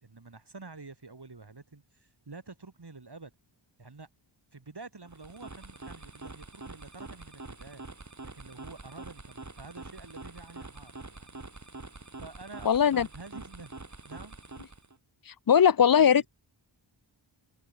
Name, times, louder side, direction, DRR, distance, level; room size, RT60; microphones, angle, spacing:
voice 1, 0.0-3.3 3.8-4.1 4.5-7.9 8.2-11.4 12.2-13.7 14.1-14.4 16.0-16.3, right 3 dB, 55° right, 4.2 m, -48 dB
sound 1, 5.0-15.0, right 3 dB, 35° right, 2.8 m, -45 dB
voice 2, 12.7-13.1 15.3-16.2, left 8 dB, 45° left, 0.5 m, -20 dB
wide cardioid pair, 70°, 48 cm